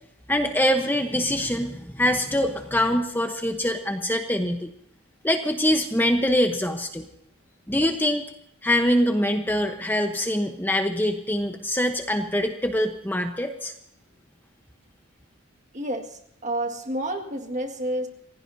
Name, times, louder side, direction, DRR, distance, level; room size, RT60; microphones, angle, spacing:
voice 1, 0.3-4.7 5.2-7.0 7.7-8.2 8.6-13.7, left 1 dB, 10° left, 5 dB, 1.0 m, -24 dB
voice 2, 15.7-18.1, right 1 dB, 35° right, 4 dB, 1.8 m, -30 dB
27.0 x 16.5 x 2.8 m, 0.75 s
head